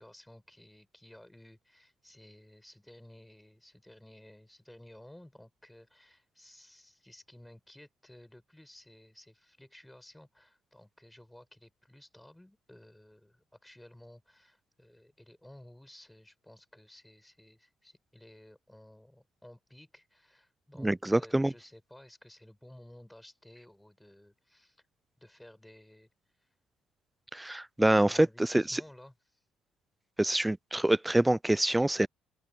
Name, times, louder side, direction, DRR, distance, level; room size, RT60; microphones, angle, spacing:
voice 1, 0.0-24.8 25.2-26.5 28.1-29.4, left 1 dB, 5° left, 7.8 m, -55 dB
voice 2, 20.8-21.5 27.3-28.8 30.2-32.1, right 1 dB, 10° right, 0.4 m, -26 dB
open air
supercardioid pair, 70°, 0 cm